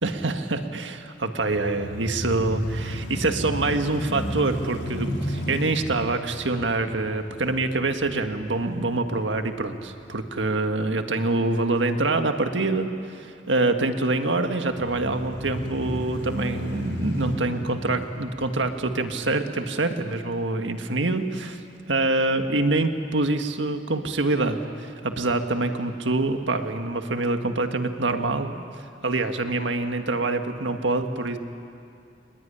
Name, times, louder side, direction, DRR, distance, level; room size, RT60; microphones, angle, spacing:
voice 1, 0.0-21.6 21.9-28.6 29.0-31.4, right 2 dB, 85° right, 6 dB, 1.7 m, -25 dB
sound 1, 1.4-9.5 10.0-10.1 14.7-19.1, equal, 65° left, 3.6 m, -33 dB
22.0 x 20.5 x 10.0 m, 2.4 s
head